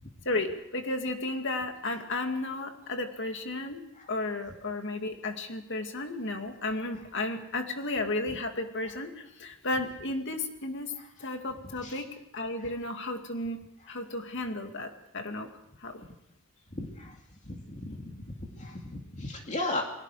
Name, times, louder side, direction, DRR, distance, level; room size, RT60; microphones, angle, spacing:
voice 1, 0.2-10.9 11.2-13.6 13.9-15.5 15.8-15.9, left 2 dB, 60° left, 5 dB, 2.3 m, -33 dB
voice 2, 16.7-17.2 17.4-19.8, left 2 dB, 35° left, 1 dB, 2.5 m, -36 dB
30.0 x 21.0 x 5.0 m, 0.81 s
head